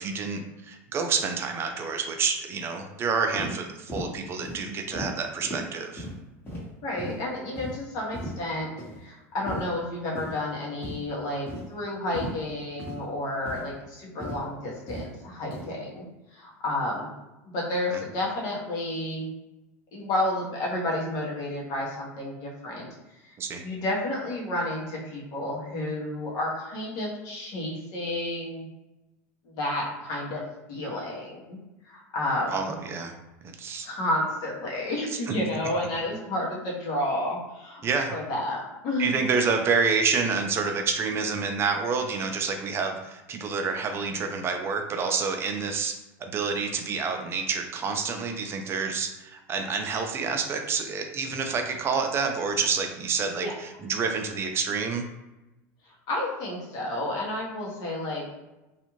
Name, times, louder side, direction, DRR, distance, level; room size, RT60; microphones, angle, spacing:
voice 1, 0.0-6.1 23.4-23.6 32.5-33.1 33.4-33.9 35.3-35.4 37.8-38.1 39.0-45.9 46.2-53.5 53.8-55.1, right 5 dB, 30° right, 4 dB, 0.4 m, -28 dB
sound 1, 3.4-3.5 3.9-4.1 4.4-4.6 4.9-5.1 5.4-5.6 6.0-6.1 6.5-6.6 7.0-7.2 7.5-7.7 8.1-8.3 8.8-9.0 9.5-9.6 10.1-10.3 10.8-11.0 11.5-11.6 12.1-12.3 12.8-13.0 13.4-13.6 14.2-14.4 14.9-15.1 15.5-15.7, equal, 30° left, 1.2 m, -36 dB
voice 2, 6.8-8.7 9.0-16.0 16.3-17.1 17.5-19.3 19.9-22.9 23.2-23.3 23.6-28.6 29.4-30.4 30.7-31.6 31.8-32.7 33.8-37.8 38.1-39.2 53.3-53.5 56.1-58.2, left 1 dB, 55° left, -3 dB, 1.0 m, -31 dB
2.5 x 2.4 x 3.0 m, 1.0 s
supercardioid pair, 115°, 8 cm